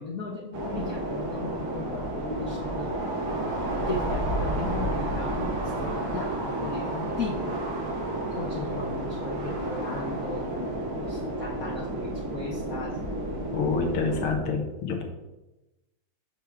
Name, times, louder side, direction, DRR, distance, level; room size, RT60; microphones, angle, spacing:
voice 1, 0.0-3.0 3.9-7.6 8.3-13.0, left 3 dB, 50° left, -3 dB, 1.2 m, -36 dB
sound 1, 0.5-14.3, right 1 dB, 65° right, 2.0 m, -31 dB
voice 2, 13.5-15.0, left 4 dB, 75° left, 2 dB, 2.0 m, -27 dB
8.3 x 6.2 x 3.5 m, 1.0 s
omnidirectional pair, 2.4 m